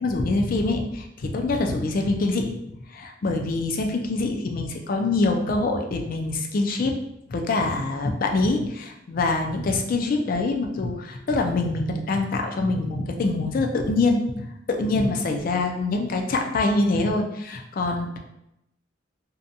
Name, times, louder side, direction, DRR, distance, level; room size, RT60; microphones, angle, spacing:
voice 1, 0.0-7.0 7.3-18.2, left 2 dB, 50° left, 3 dB, 0.4 m, -25 dB
2.7 x 2.2 x 2.5 m, 0.83 s
head